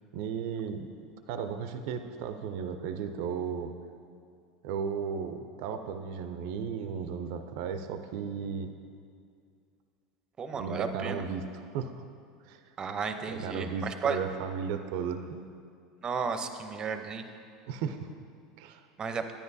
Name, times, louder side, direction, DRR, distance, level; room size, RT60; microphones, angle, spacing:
voice 1, 0.1-0.9 1.3-3.7 4.6-8.7 10.5-12.0 12.4-12.7 13.3-15.5 17.7-18.1 18.6-18.8, right 6 dB, 65° right, 8 dB, 0.5 m, -35 dB
voice 2, 10.4-11.2 12.8-14.2 16.0-17.2 19.0-19.2, right 5 dB, 30° right, 8 dB, 0.7 m, -33 dB
10.0 x 9.5 x 2.7 m, 2.3 s
hypercardioid pair, 100°, 3 cm